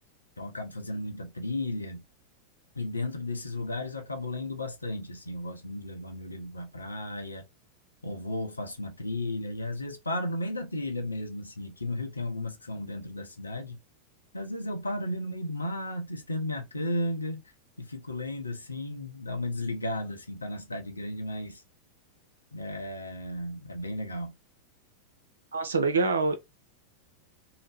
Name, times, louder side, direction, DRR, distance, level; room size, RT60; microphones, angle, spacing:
voice 1, 0.4-2.0 2.7-7.5 8.0-13.8 14.3-17.4 17.8-21.6 22.5-24.3, left 1 dB, 80° left, 0.7 m, -34 dB
voice 2, 25.5-26.4, right 3 dB, 70° right, 0.5 m, -25 dB
2.7 x 2.1 x 3.2 m
figure-of-eight pair, 90°, 0 cm